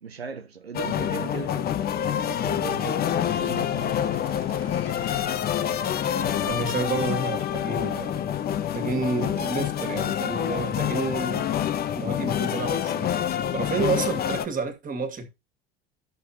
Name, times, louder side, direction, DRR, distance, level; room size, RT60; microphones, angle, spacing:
voice 1, 0.0-1.8 2.2-4.2, right 6 dB, 90° right, 0.7 m, -37 dB
sound 1, 0.7-14.5, left 10 dB, 30° left, 0.7 m, -27 dB
sound 2, 1.8-10.9, left 10 dB, 75° left, 0.7 m, -41 dB
sound 3, 3.7-7.9, right 7 dB, 75° right, 1.1 m, -48 dB
voice 2, 6.4-8.3 8.7-11.5 12.0-13.2 13.5-15.3, right 4 dB, 25° right, 2.0 m, -30 dB
12.5 x 6.8 x 2.8 m
figure-of-eight pair, 70°, 30 cm